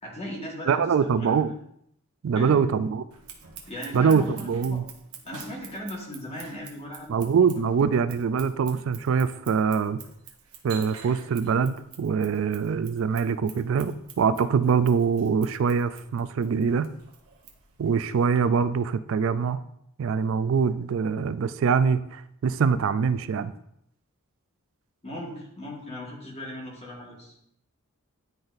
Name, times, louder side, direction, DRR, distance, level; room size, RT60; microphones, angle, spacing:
voice 1, 0.0-1.4 2.3-2.6 3.7-4.8 5.2-7.3 25.0-27.3, equal, 30° left, -3 dB, 1.6 m, -38 dB
voice 2, 0.7-1.5 2.2-3.0 3.9-4.8 7.1-10.0 10.6-16.9 17.8-19.6 20.0-23.5, right 6 dB, 60° right, 12 dB, 0.3 m, -24 dB
Scissors, 3.1-18.4, right 7 dB, 85° right, 0.9 m, -48 dB
10.5 x 4.0 x 2.6 m, 0.74 s
head